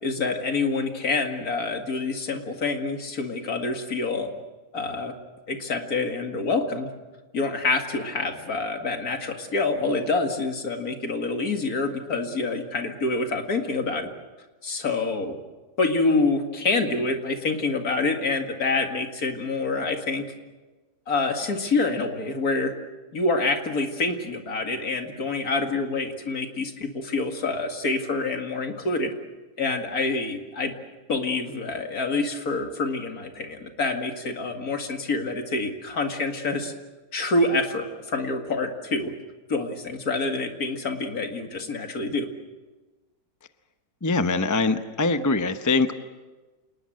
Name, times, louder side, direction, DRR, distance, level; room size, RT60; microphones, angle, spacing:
voice 1, 0.0-4.3 4.7-5.1 5.5-6.9 7.3-14.1 14.6-15.4 15.8-20.2 21.1-22.7 23.1-29.1 29.6-30.7 31.1-36.7 37.1-39.1 39.5-42.3, left 3 dB, 55° left, 5 dB, 2.5 m, -26 dB
voice 2, 44.0-45.9, left 3 dB, 20° left, 9 dB, 0.5 m, -23 dB
28.0 x 19.5 x 7.7 m, 1.2 s
omnidirectional pair, 1.9 m